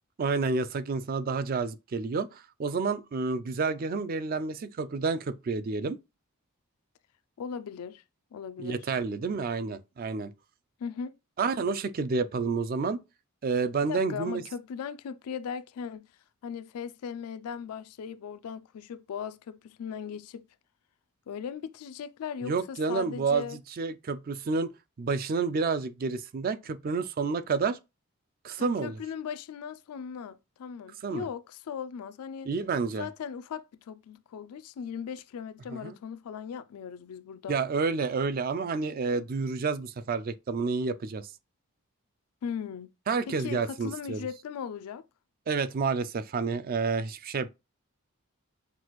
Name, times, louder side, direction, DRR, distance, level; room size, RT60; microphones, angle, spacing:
voice 1, 0.2-6.0 8.6-10.3 11.4-13.0 13.4-14.4 22.4-23.4 23.8-24.7 25.0-27.8 28.4-29.0 31.0-31.3 32.5-33.1 35.7-36.0 37.5-41.3 43.1-44.3 45.5-47.5, right 4 dB, 40° right, 0.3 m, -29 dB
voice 2, 7.4-8.0 8.3-8.8 10.8-11.1 13.9-16.1 16.4-20.5 21.3-23.6 28.6-32.5 32.9-37.6 42.4-42.9 43.3-45.0, left 7 dB, 80° left, 0.3 m, -38 dB
5.9 x 2.4 x 3.0 m
head